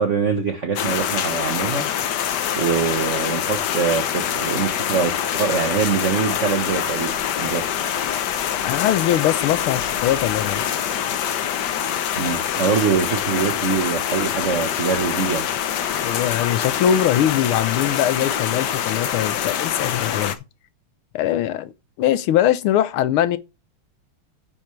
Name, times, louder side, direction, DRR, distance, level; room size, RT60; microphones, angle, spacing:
voice 1, 0.0-1.9 2.6-7.1 7.4-7.7 12.2-15.5, right 6 dB, 45° right, 1.1 m, -23 dB
sound 1, 0.8-20.4, left 9 dB, 60° left, 1.3 m, -25 dB
voice 2, 8.6-10.6 16.0-20.3 21.1-21.7 22.0-23.4, left 11 dB, 85° left, 1.6 m, -21 dB
9.2 x 8.9 x 3.2 m
omnidirectional pair, 2.3 m